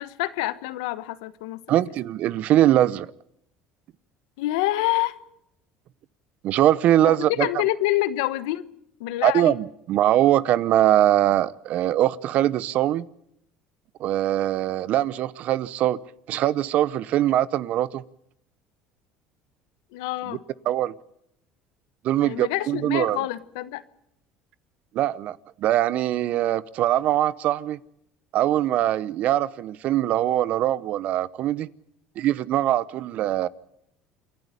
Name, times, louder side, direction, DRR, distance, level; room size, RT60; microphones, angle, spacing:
voice 1, 0.0-1.6 4.4-5.2 7.0-8.7 9.0-9.6 19.9-20.4 22.2-23.8, left 16 dB, 85° left, 1.2 m, -27 dB
voice 2, 1.7-3.1 6.4-7.5 9.2-13.1 14.0-16.0 16.3-18.0 20.3-20.4 20.7-20.9 22.0-23.3 24.9-27.8 28.3-31.7 32.2-33.5, right 13 dB, 60° right, 0.8 m, -22 dB
28.0 x 11.5 x 10.0 m
supercardioid pair, 100°, 3 cm